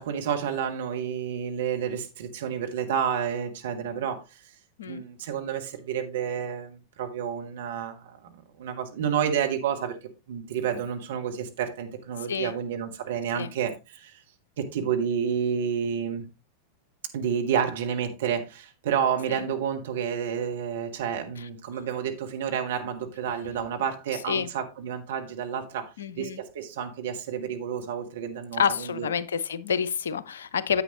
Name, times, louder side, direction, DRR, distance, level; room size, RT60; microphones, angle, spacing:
voice 1, 0.0-4.2 4.8-9.9 10.3-14.1 14.6-16.2 17.1-29.1, right 8 dB, 60° right, 1.6 m, -30 dB
voice 2, 26.0-26.4 28.5-30.8, left 7 dB, 65° left, 0.6 m, -28 dB
9.8 x 8.1 x 3.0 m
figure-of-eight pair, 90°, 0 cm